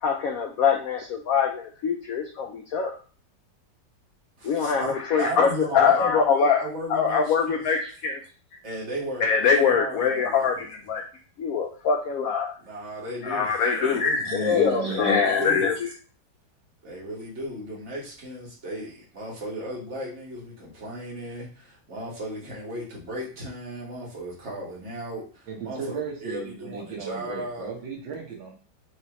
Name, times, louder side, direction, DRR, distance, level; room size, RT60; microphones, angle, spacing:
voice 1, 0.0-2.9 4.4-6.6 6.9-8.2 9.2-11.0 11.4-12.5 13.2-15.9, left 6 dB, 85° left, 3 dB, 0.7 m, -23 dB
voice 2, 4.4-7.6 8.6-10.6 12.6-14.4 14.9-15.6 16.8-27.7, right 1 dB, 40° right, -4 dB, 1.6 m, -35 dB
voice 3, 14.2-15.2 25.5-28.5, right 6 dB, 80° right, -1 dB, 1.7 m, -35 dB
4.7 x 3.0 x 2.9 m, 0.40 s
omnidirectional pair, 2.0 m